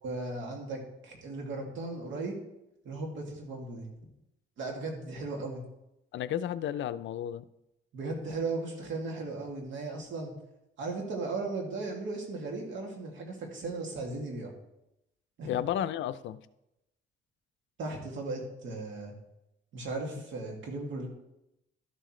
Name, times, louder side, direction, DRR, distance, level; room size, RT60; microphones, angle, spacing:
voice 1, 0.0-2.4 2.8-3.9 4.6-5.6 7.9-10.3 10.8-14.5 15.4-15.5 17.8-19.1 19.7-21.1, right 3 dB, 75° right, 0 dB, 2.4 m, -36 dB
voice 2, 6.1-7.4 15.5-16.4, left 10 dB, 70° left, 14 dB, 0.5 m, -32 dB
12.0 x 7.6 x 3.2 m, 0.86 s
cardioid pair, 90°, 20 cm